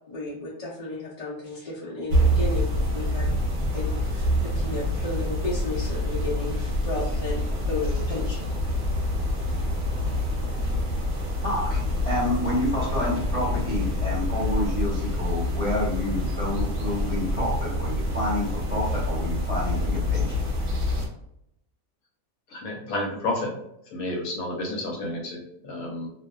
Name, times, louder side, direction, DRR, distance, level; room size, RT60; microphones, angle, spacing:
voice 1, 0.1-3.3 3.7-8.5, left 2 dB, 45° left, -8 dB, 0.5 m, -33 dB
sound 1, 2.1-21.1, left 1 dB, 55° right, 0.8 m, -26 dB
voice 2, 11.4-20.4, left 1 dB, 10° right, -7 dB, 0.8 m, -29 dB
voice 3, 22.5-23.5 23.9-26.1, left 2 dB, 75° left, 0 dB, 1.1 m, -31 dB
2.6 x 2.1 x 2.2 m, 0.77 s
omnidirectional pair, 1.5 m